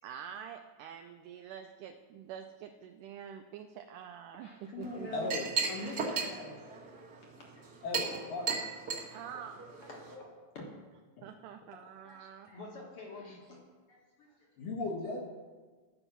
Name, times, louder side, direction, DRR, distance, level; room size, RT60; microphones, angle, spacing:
voice 1, 0.0-4.5 4.8-5.3 9.1-9.6 11.2-12.5, right 8 dB, 80° right, 5 dB, 1.9 m, -46 dB
voice 2, 4.3-6.7 7.3-7.5 8.5-8.6 9.1-9.3 9.8-10.7 11.2-11.3 12.0-14.5, left 2 dB, 50° left, -2 dB, 2.0 m, -46 dB
Chink clink, 4.8-10.2, right 5 dB, 40° right, 1.4 m, -37 dB
voice 3, 5.1-5.5 7.8-8.4 14.6-15.3, left 3 dB, 70° left, -1 dB, 3.2 m, -36 dB
11.5 x 5.4 x 7.1 m, 1.4 s
omnidirectional pair, 4.0 m